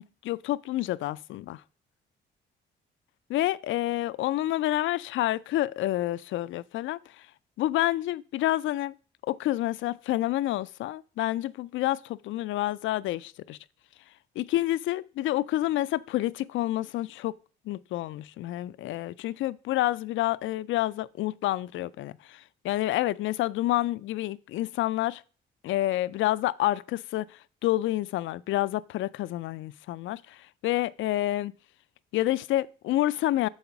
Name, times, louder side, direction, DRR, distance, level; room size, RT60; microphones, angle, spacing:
voice 1, 0.0-1.6 3.3-7.3 7.6-8.9 9.2-13.6 14.4-17.4 17.7-25.2 25.6-31.5 32.1-33.5, left 15 dB, 75° left, 0.4 m, -28 dB
6.4 x 5.4 x 5.8 m
cardioid pair, 90°, 20 cm